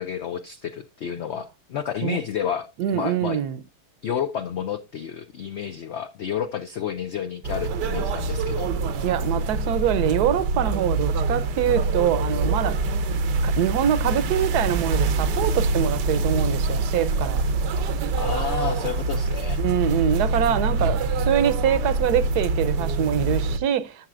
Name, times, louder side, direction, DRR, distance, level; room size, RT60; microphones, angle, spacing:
voice 1, 0.0-3.4 4.0-8.7 18.2-19.6 20.8-21.0, left 8 dB, 80° left, 0.6 m, -30 dB
voice 2, 2.8-3.6 9.0-12.9 13.4-17.4 19.6-24.1, right 10 dB, 75° right, 1.2 m, -24 dB
sound 1, 7.4-23.6, right 3 dB, 90° right, 1.4 m, -25 dB
11.0 x 7.4 x 2.4 m
omnidirectional pair, 1.8 m